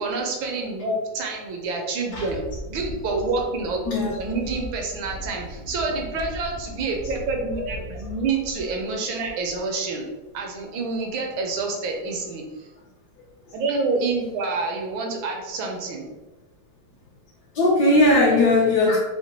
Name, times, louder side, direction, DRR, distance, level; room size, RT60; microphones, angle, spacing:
voice 1, 0.0-2.4 2.7-3.8 4.2-10.0 10.3-12.7 13.5-16.1, right 3 dB, 75° right, 2 dB, 1.3 m, -27 dB
Wind, 2.1-8.9 9.2-9.7, equal, 55° right, 0.8 m, -38 dB
voice 2, 3.8-4.2 7.5-8.1 9.2-9.3 17.5-19.0, left 2 dB, 65° left, -5 dB, 1.1 m, -20 dB
4.3 x 2.1 x 2.9 m, 1.1 s
omnidirectional pair, 2.3 m